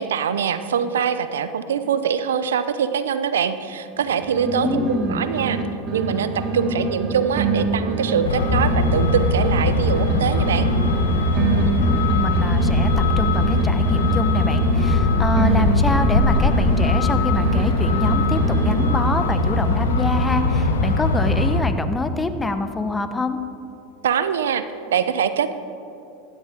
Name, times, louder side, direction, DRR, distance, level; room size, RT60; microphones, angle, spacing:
voice 1, 0.0-4.8 5.1-5.6 5.9-10.7 24.0-24.6 24.9-25.7, right 7 dB, 85° right, 12 dB, 0.7 m, -23 dB
sound 1, 4.0-5.6 5.9-9.6 9.9-13.6 13.9-17.6 17.9-19.3, right 3 dB, 45° right, 2.2 m, -26 dB
voice 2, 4.4-5.2 11.8-23.4, left 3 dB, 15° left, 9 dB, 1.0 m, -26 dB
Truck, 8.3-21.6, left 2 dB, 85° left, 1.3 m, -20 dB
16.5 x 12.5 x 3.7 m, 2.7 s
hypercardioid pair, 90°, 0 cm